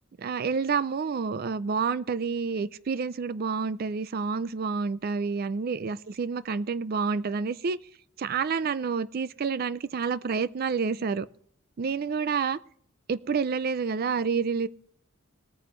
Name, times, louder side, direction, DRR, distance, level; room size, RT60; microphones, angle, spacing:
voice 1, 0.2-7.8 8.2-11.3 11.8-12.6 13.1-14.7, right 5 dB, 45° right, 0.4 m, -28 dB
19.5 x 9.2 x 3.1 m
head